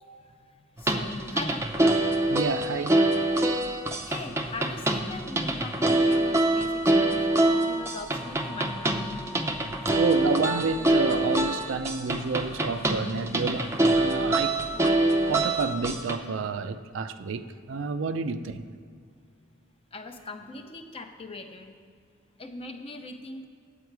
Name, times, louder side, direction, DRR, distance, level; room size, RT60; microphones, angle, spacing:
voice 1, 0.2-2.0 4.0-9.1 19.9-21.8 22.4-23.5, left 2 dB, 30° left, 0.6 m, -41 dB
sound 1, 0.8-16.2, right 1 dB, 15° right, 0.5 m, -25 dB
voice 2, 2.3-3.0 9.9-14.6 15.3-18.6, right 4 dB, 80° right, 0.4 m, -30 dB
sound 2, 6.8-19.0 19.3-21.0 21.3-21.7 22.0-22.1, left 1 dB, 5° left, 0.9 m, -48 dB
9.3 x 8.2 x 4.6 m
head